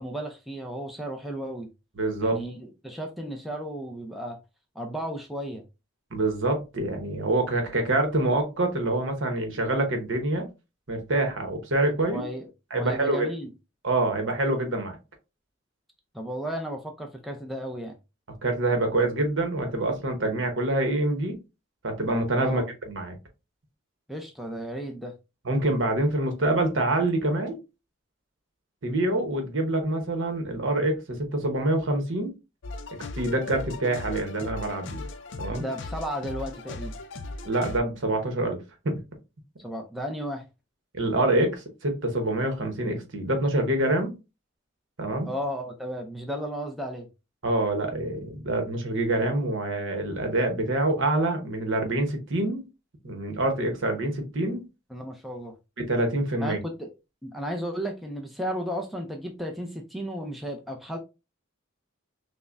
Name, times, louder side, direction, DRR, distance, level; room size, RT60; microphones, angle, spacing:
voice 1, 0.0-1.7 2.2-4.4 4.7-5.7 12.1-13.5 16.1-18.0 22.4-22.7 24.1-25.1 35.5-37.0 39.6-40.4 45.3-47.1 54.9-55.5 56.4-56.9 57.2-61.0, equal, ahead, 0.4 m, -34 dB
voice 2, 2.0-2.4 6.1-10.5 10.9-12.3 12.7-13.3 13.8-15.0 18.4-21.4 21.8-22.6 22.9-23.2 25.4-27.6 28.8-32.3 33.2-35.0 35.4-35.6 37.4-38.6 38.8-39.0 40.9-44.1 45.0-45.3 47.4-52.6 53.0-54.6 55.8-56.6, right 2 dB, 65° right, 1.0 m, -26 dB
sound 1, 32.6-37.8, left 2 dB, 60° left, 0.4 m, -37 dB
5.4 x 2.1 x 2.5 m
head